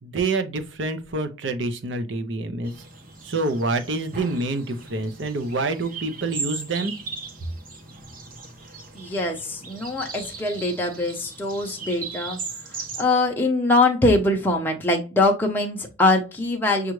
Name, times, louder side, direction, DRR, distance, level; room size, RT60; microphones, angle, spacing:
voice 1, 0.0-2.7 3.2-6.9, right 2 dB, 65° right, 0.6 m, -27 dB
sound 1, 2.6-13.0, right 4 dB, 45° right, 0.9 m, -38 dB
voice 2, 8.9-12.4 13.0-16.9, left 2 dB, 10° left, 0.6 m, -22 dB
6.3 x 2.4 x 3.0 m
head